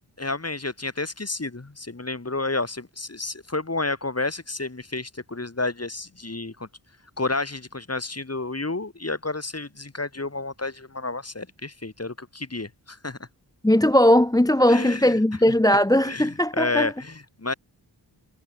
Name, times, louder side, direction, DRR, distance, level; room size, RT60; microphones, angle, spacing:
voice 1, 0.2-6.7 7.2-13.2 14.7-15.2 16.0-17.5, left 3 dB, 35° left, 6.0 m, -30 dB
voice 2, 13.6-16.9, left 1 dB, 10° left, 0.9 m, -19 dB
wide cardioid pair, 70°, 43 cm